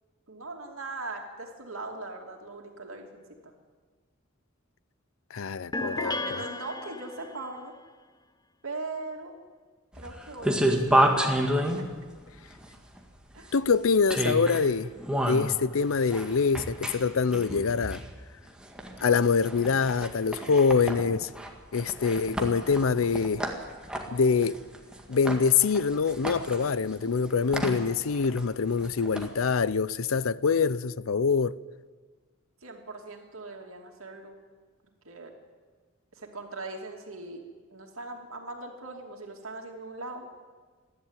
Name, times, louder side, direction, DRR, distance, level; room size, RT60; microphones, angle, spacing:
voice 1, 0.3-3.5 5.8-7.7 8.6-9.4 9.9-11.1 11.8-11.9 13.3-13.5 32.6-34.4 35.0-35.3 36.1-37.4 37.7-40.3, right 2 dB, 80° right, 2.7 m, -40 dB
voice 2, 5.3-6.4 13.5-14.9 15.2-18.0 19.0-21.3 21.7-23.4 24.1-24.6 25.1-31.6, left 5 dB, 80° left, 0.6 m, -25 dB
sound 1, 5.7-7.5, left 2 dB, 20° left, 0.7 m, -34 dB
sound 2, 9.9-29.7, right 1 dB, 5° right, 2.0 m, -31 dB
27.5 x 11.5 x 9.0 m
head